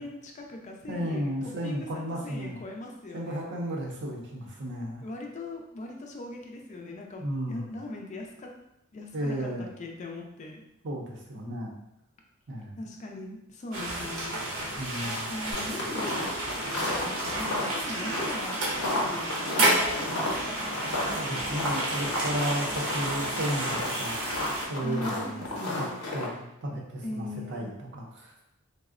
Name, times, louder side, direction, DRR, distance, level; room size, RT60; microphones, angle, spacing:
voice 1, 0.0-1.4 1.6-3.5 5.0-8.5 8.9-10.6 12.8-14.4 15.3-20.8 24.8-26.0 27.0-27.7, left 2 dB, 35° left, 1 dB, 0.4 m, -40 dB
voice 2, 0.9-2.6 3.1-5.0 7.2-7.7 9.1-9.7 10.8-11.7 12.5-12.8 14.8-15.3 21.1-25.5 25.7-25.9 26.1-28.3, equal, 55° right, -1 dB, 0.6 m, -34 dB
sound 1, 13.7-24.7, right 1 dB, 90° right, 0.8 m, -31 dB
sound 2, 15.5-26.3, left 1 dB, 85° left, 0.7 m, -33 dB
3.5 x 2.0 x 2.4 m, 0.82 s
head